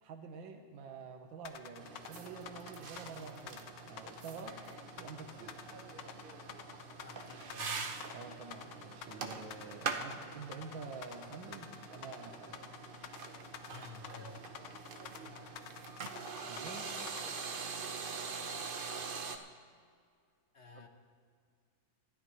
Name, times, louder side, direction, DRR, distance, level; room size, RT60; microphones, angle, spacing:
voice 1, 0.0-4.6 5.0-5.5 8.1-12.6 16.4-16.9 20.7-20.8, right 5 dB, 80° right, 4 dB, 1.7 m, -48 dB
sound 1, 1.4-17.5, left 9 dB, 75° left, 1.4 m, -49 dB
sound 2, 1.8-19.4, right 5 dB, 60° right, 0.5 m, -44 dB
voice 2, 6.9-7.9 13.7-14.4 15.2-15.5 20.5-20.9, left 5 dB, 45° left, 4 dB, 1.0 m, -52 dB
25.5 x 12.5 x 3.1 m, 2.1 s
omnidirectional pair, 2.1 m